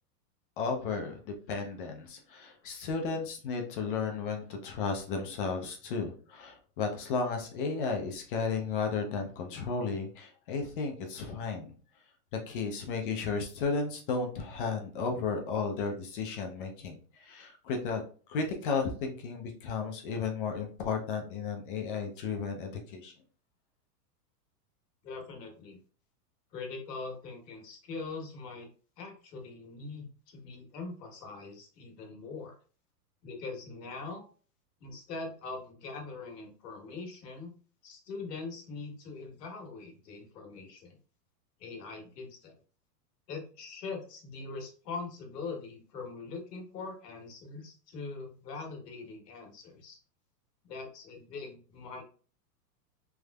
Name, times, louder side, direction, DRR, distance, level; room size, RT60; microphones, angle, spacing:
voice 1, 0.6-11.7 12.5-18.0 18.3-23.1, left 4 dB, 35° left, 3 dB, 0.5 m, -34 dB
voice 2, 25.0-25.8 26.5-28.7 29.0-32.6 33.2-34.2 34.8-37.5 37.8-41.0 41.6-42.5 43.3-50.0 50.6-52.0, left 4 dB, 80° left, 2 dB, 1.4 m, -42 dB
3.5 x 3.1 x 2.3 m, 0.40 s
supercardioid pair, 155°, 48 cm